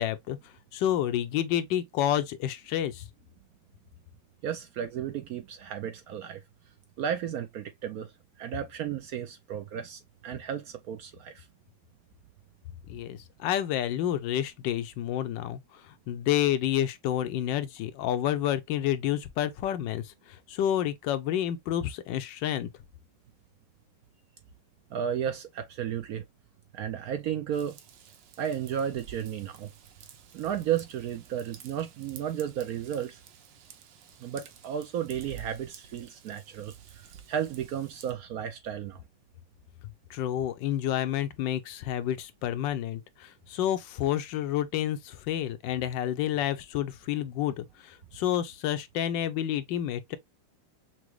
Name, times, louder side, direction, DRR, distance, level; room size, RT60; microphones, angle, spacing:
voice 1, 0.0-3.1 12.9-22.7 40.1-50.2, left 11 dB, 85° left, 1.3 m, -29 dB
voice 2, 4.4-6.4 7.0-8.1 8.4-11.5 24.9-26.3 26.7-27.8 28.4-29.7 30.3-33.2 34.2-39.0, right 9 dB, 70° right, 0.9 m, -33 dB
Raindrop / Vehicle horn car horn honking / Trickle dribble, 27.5-38.1, right 8 dB, 85° right, 1.5 m, -51 dB
6.0 x 2.2 x 3.1 m
omnidirectional pair, 2.0 m